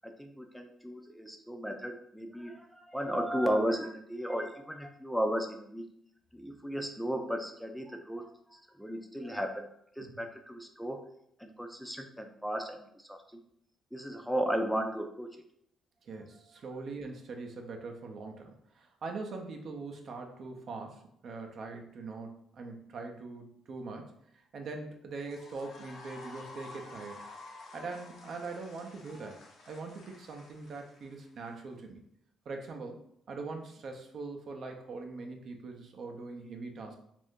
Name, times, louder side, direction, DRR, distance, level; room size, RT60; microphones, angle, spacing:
voice 1, 0.0-5.9 6.3-9.7 10.0-11.1 11.4-13.4 13.9-15.4, equal, ahead, 4 dB, 0.4 m, -35 dB
voice 2, 16.0-24.1 24.5-27.3 27.7-32.0 32.5-37.0, right 3 dB, 60° right, 3 dB, 0.5 m, -42 dB
sound 1, 25.2-31.5, left 2 dB, 75° left, 0.7 m, -51 dB
2.6 x 2.5 x 3.5 m, 0.71 s
cardioid pair, 90°, 0 cm